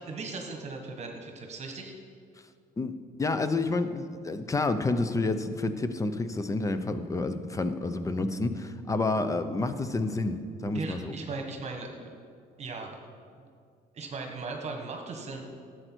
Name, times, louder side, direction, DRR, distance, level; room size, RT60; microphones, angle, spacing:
voice 1, 0.0-1.9 10.7-12.2 12.6-13.0 13.4-13.5 13.9-15.4, right 3 dB, 40° right, 3 dB, 1.4 m, -38 dB
voice 2, 3.2-11.2, left 3 dB, 20° left, 10 dB, 0.7 m, -29 dB
12.0 x 7.9 x 4.6 m, 2.2 s
cardioid pair, 110°, 17 cm